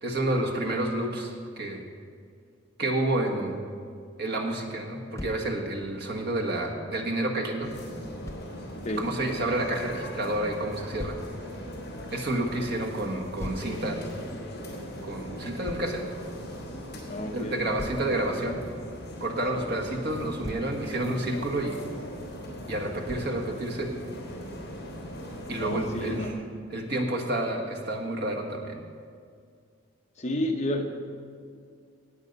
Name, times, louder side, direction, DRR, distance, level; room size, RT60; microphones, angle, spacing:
voice 1, 0.0-1.8 2.8-3.6 4.2-7.7 9.0-11.2 12.1-14.0 15.0-16.0 17.3-18.6 19.2-21.8 22.7-23.9 25.5-26.3 26.7-28.8, right 1 dB, 50° right, 2 dB, 1.5 m, -29 dB
Thump thud, 5.2-5.5 8.3-8.5 11.0-11.3 13.4-13.7 15.6-15.9 17.8-18.1 20.2-20.7 23.1-23.4, left 1 dB, 15° left, 0.5 m, -38 dB
sound 1, 7.6-26.3, equal, 50° left, 3.2 m, -40 dB
voice 2, 8.8-9.2 17.1-17.7 19.5-19.7 25.6-26.5 30.2-30.9, left 1 dB, 35° left, 3 dB, 0.9 m, -31 dB
17.5 x 8.4 x 5.3 m, 2.2 s
head